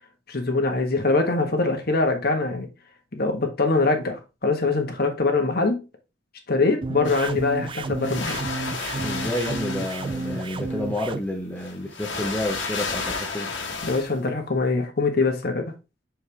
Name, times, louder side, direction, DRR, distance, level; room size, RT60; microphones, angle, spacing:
voice 1, 0.3-2.7 3.1-5.8 6.5-8.4 13.8-15.7, left 3 dB, 55° left, 1.5 m, -23 dB
sound 1, 6.8-11.2, right 3 dB, 25° right, 0.4 m, -31 dB
sound 2, 7.0-7.6 8.0-10.7 11.6-14.1, left 4 dB, 85° left, 1.7 m, -32 dB
voice 2, 9.0-13.5, left 1 dB, 10° left, 1.0 m, -30 dB
6.5 x 4.6 x 3.5 m
head